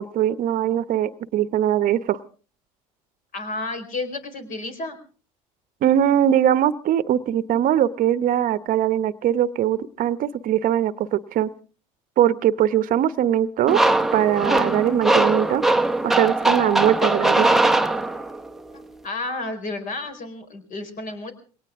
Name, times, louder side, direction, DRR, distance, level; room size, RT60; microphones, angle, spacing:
voice 1, 0.0-2.2 5.8-11.5 12.2-13.8 14.1-15.6 16.0-17.5, right 11 dB, 50° right, 15 dB, 0.9 m, -21 dB
voice 2, 3.3-5.0 18.7-21.3, left 2 dB, 50° left, 7 dB, 4.5 m, -31 dB
sound 1, 13.7-18.5, right 2 dB, ahead, 0.9 m, -20 dB
21.5 x 18.5 x 3.6 m, 0.39 s
supercardioid pair, 85°, 18 cm